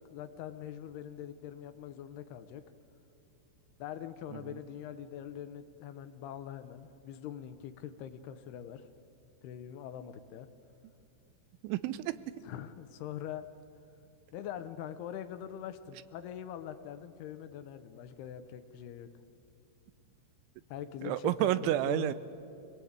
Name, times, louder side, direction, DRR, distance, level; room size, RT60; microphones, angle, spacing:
voice 1, 0.1-2.6 3.8-8.9 9.4-10.5 12.4-13.4 14.3-19.1 20.7-22.1, left 10 dB, 75° left, 10 dB, 2.4 m, -43 dB
voice 2, 11.6-12.1 21.0-22.1, right 13 dB, 85° right, 15 dB, 3.1 m, -30 dB
25.5 x 18.5 x 8.7 m, 2.7 s
omnidirectional pair, 5.4 m